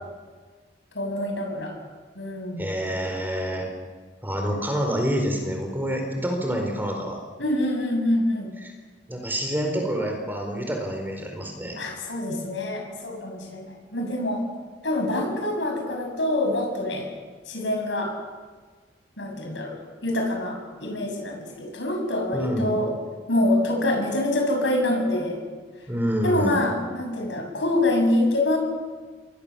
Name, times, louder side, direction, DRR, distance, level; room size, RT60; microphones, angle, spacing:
voice 1, 0.9-1.7 2.2-2.6 7.4-8.5 11.8-14.4 14.8-17.1 17.5-18.1 19.2-19.8 20.0-22.9 23.3-25.4 26.2-28.6, left 1 dB, 80° left, 2 dB, 7.0 m, -25 dB
voice 2, 2.6-3.7 4.2-7.2 9.1-11.8 22.3-22.7 25.9-26.7, equal, 10° right, 2 dB, 4.5 m, -27 dB
28.0 x 22.0 x 7.2 m, 1.4 s
head